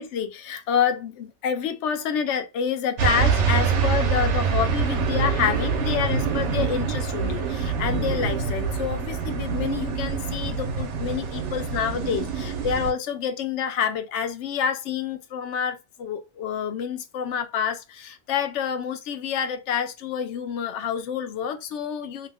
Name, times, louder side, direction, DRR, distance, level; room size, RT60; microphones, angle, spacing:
voice 1, 0.0-22.3, left 7 dB, 85° left, 0.9 m, -28 dB
sound 1, 3.0-12.9, right 5 dB, 90° right, 1.0 m, -25 dB
2.9 x 2.0 x 3.4 m
omnidirectional pair, 1.2 m